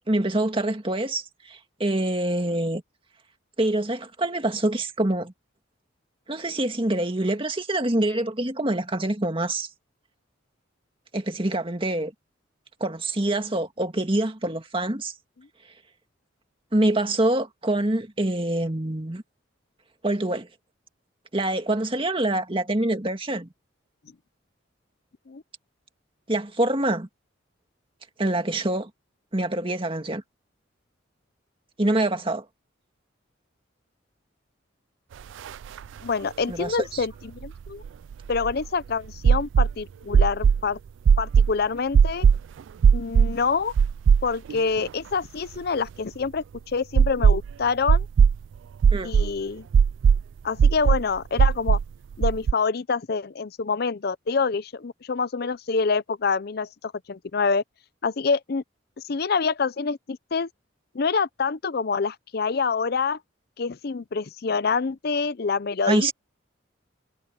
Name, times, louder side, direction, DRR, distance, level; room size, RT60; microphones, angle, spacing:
voice 1, 0.1-2.8 3.6-5.3 6.3-9.7 11.1-12.1 12.8-15.1 16.7-19.2 20.0-20.5 21.3-23.5 26.3-27.1 28.2-28.9 29.3-30.2 31.8-32.4 36.5-37.1 48.9-49.1 65.9-66.1, right 1 dB, 25° right, 2.0 m, -25 dB
sound 1, 35.5-35.6 35.8-35.9 37.4-38.7 39.2-39.7 40.1-40.6 41.1-41.5 41.9-42.4 42.8-43.3 43.8-44.5 44.9-45.0 47.0-47.5 47.9-48.4 48.8-49.3 49.7-50.2 50.6-51.0 51.4-51.8 52.2-52.5, right 6 dB, 70° right, 0.3 m, -17 dB
voice 2, 36.0-37.8 38.3-40.8 41.2-42.3 42.9-43.7 44.2-48.1 49.0-49.7 50.4-51.8 52.2-57.6 58.0-58.6 59.0-60.5 60.9-63.2 63.6-66.1, left 5 dB, 55° left, 0.6 m, -26 dB
head